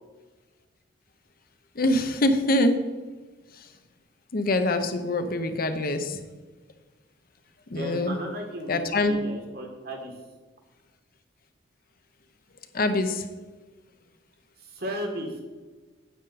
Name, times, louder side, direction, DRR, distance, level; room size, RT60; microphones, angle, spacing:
voice 1, 1.8-2.8 4.3-6.2 7.7-8.2 8.7-9.2 12.7-13.2, left 1 dB, 45° left, 8 dB, 0.7 m, -24 dB
voice 2, 7.7-10.1 14.6-15.4, equal, 50° right, 2 dB, 1.7 m, -35 dB
9.3 x 7.8 x 4.1 m, 1.3 s
head